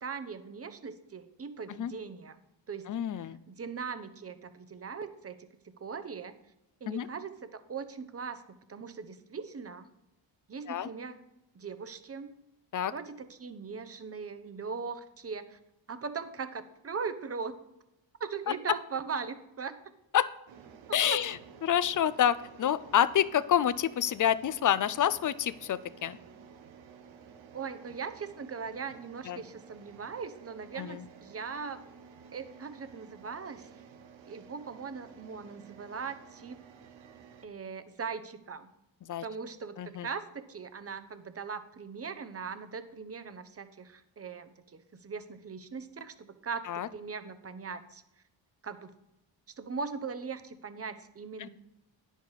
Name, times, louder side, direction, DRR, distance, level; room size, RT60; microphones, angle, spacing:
voice 1, 0.0-2.4 2.7-2.9 3.5-5.5 5.8-6.3 6.8-8.4 8.7-9.9 10.5-11.2 11.5-12.3 12.9-15.6 15.9-17.5 18.2-19.8 21.0-21.2 27.5-31.8 32.3-33.7 34.3-36.6 37.4-38.7 39.2-48.0 48.6-49.0 49.6-51.5, right 5 dB, 30° right, 11 dB, 0.8 m, -40 dB
voice 2, 2.9-3.4 6.9-7.1 10.7-10.9 12.7-12.9 20.1-20.3 20.9-21.4 21.6-26.2 29.3-29.4 30.8-31.0 39.1-39.2 39.8-40.1 46.7-46.9 51.4-51.5, left 10 dB, 45° left, 17 dB, 0.5 m, -28 dB
sound 1, 20.5-37.5, right 7 dB, 75° right, 1.1 m, -53 dB
10.0 x 6.7 x 4.8 m, 0.91 s
cardioid pair, 105°, 46 cm